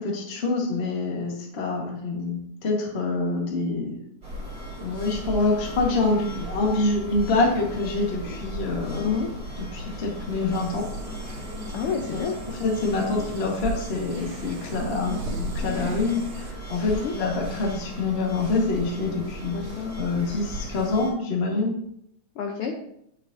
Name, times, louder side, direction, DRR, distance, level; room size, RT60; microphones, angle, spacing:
voice 1, 0.0-4.0 4.8-9.1 9.7-10.9 12.1-12.2 12.6-19.6 20.0-21.8, left 3 dB, 40° left, -1 dB, 0.8 m, -26 dB
sound 1, 4.2-21.1, equal, 25° right, 2.4 m, -36 dB
voice 2, 8.9-9.3 11.7-12.4 13.1-13.3 16.9-17.1 19.5-20.0 22.4-22.7, left 6 dB, 80° left, 2 dB, 1.2 m, -29 dB
sound 2, 10.5-16.5, right 1 dB, 70° right, 1.7 m, -38 dB
9.0 x 6.3 x 2.6 m, 0.75 s
omnidirectional pair, 3.4 m